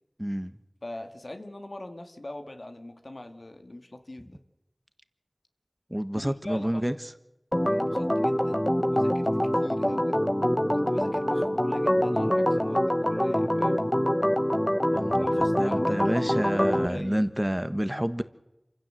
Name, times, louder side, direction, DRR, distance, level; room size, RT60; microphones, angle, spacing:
voice 1, 0.2-0.5 5.9-6.9 14.9-18.2, equal, 15° right, 1.3 m, -29 dB
voice 2, 0.8-4.4 6.2-7.0 7.7-9.3 9.6-10.2 10.7-13.9 15.2-17.3, left 1 dB, 70° left, 2.0 m, -41 dB
Organ, 7.5-16.9, equal, 15° left, 1.1 m, -25 dB
27.5 x 16.0 x 7.7 m
wide cardioid pair, 40°, 0 cm